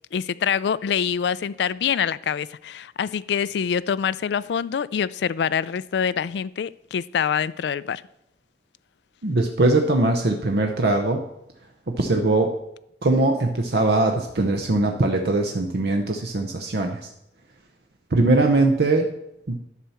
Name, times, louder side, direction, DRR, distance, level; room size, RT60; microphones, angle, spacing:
voice 1, 0.1-8.0, left 7 dB, 65° left, 19 dB, 0.3 m, -25 dB
voice 2, 9.2-11.2 12.0-12.5 13.0-17.0 18.1-19.1 19.5-19.6, right 2 dB, 65° right, 3 dB, 0.8 m, -21 dB
11.0 x 4.3 x 7.0 m, 0.84 s
head